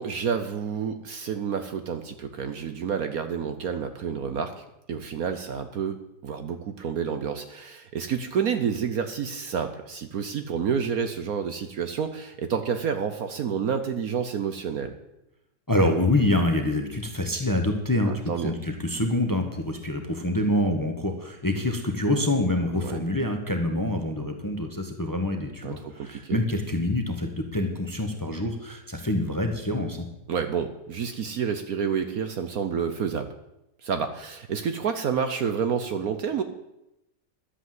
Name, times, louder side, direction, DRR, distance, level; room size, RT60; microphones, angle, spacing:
voice 1, 0.0-14.9 18.1-18.6 22.6-23.0 25.6-26.4 30.3-33.3 33.8-36.4, right 7 dB, 60° right, 8 dB, 1.2 m, -29 dB
voice 2, 15.7-30.1, left 1 dB, 15° left, 4 dB, 1.1 m, -26 dB
12.0 x 8.2 x 7.8 m, 0.89 s
omnidirectional pair, 1.9 m